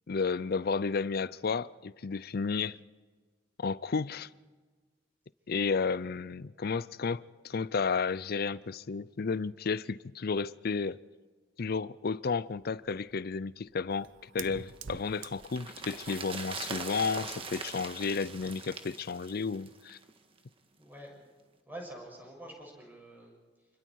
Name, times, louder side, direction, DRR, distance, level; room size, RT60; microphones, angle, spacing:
voice 1, 0.1-2.8 3.6-4.3 5.5-11.0 11.6-14.1 14.3-20.0, left 5 dB, 55° left, 0.5 m, -32 dB
Fire, 12.4-18.6, right 6 dB, 90° right, 0.7 m, -50 dB
sound 1, 14.7-20.1 20.4-20.5, right 4 dB, 30° right, 1.7 m, -42 dB
voice 2, 20.8-21.2 21.6-23.7, right 1 dB, 10° right, 6.8 m, -47 dB
27.5 x 21.5 x 4.7 m
head